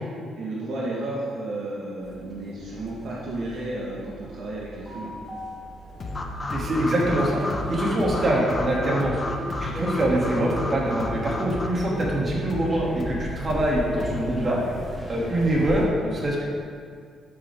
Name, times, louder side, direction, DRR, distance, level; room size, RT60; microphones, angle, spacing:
voice 1, 0.4-5.1, right 2 dB, 70° right, -5 dB, 1.6 m, -32 dB
sound 1, 2.0-15.9, equal, ahead, 2.2 m, -38 dB
sound 2, 6.0-14.5, left 2 dB, 50° left, 1.1 m, -35 dB
sound 3, 6.1-11.7, left 1 dB, 25° left, 0.9 m, -34 dB
voice 2, 6.5-7.4 7.7-9.2 9.6-14.6 15.1-16.4, right 1 dB, 35° right, -4 dB, 2.7 m, -24 dB
12.5 x 6.5 x 3.7 m, 2.1 s
cardioid pair, 90°, 0 cm